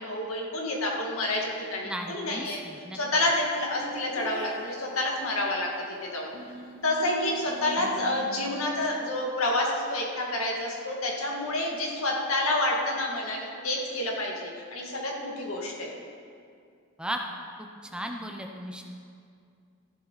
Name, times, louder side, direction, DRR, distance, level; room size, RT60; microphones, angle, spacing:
voice 1, 0.0-2.6 2.9-6.3 6.8-15.9, left 1 dB, 80° left, -1 dB, 2.1 m, -29 dB
voice 2, 1.8-3.0 17.0-17.2 17.6-18.8, equal, 5° right, 2 dB, 0.6 m, -36 dB
sound 1, 3.8-5.1 6.3-8.5, right 4 dB, 80° right, 2.0 m, -40 dB
14.5 x 11.0 x 4.1 m, 2.3 s
head